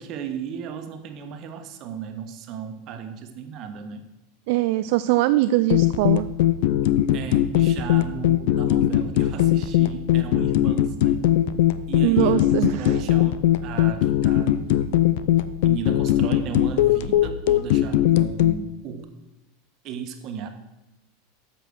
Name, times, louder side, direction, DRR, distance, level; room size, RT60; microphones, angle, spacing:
voice 1, 0.0-4.1 7.1-11.3 11.9-14.9 15.6-19.1 19.8-20.5, right 7 dB, 50° right, 7 dB, 1.3 m, -35 dB
voice 2, 4.5-6.3 12.0-12.9, right 16 dB, 65° right, 12 dB, 0.3 m, -22 dB
sound 1, 5.7-18.6, left 13 dB, 70° left, 0.5 m, -20 dB
8.4 x 6.0 x 6.3 m, 0.97 s
hypercardioid pair, 105°, 0 cm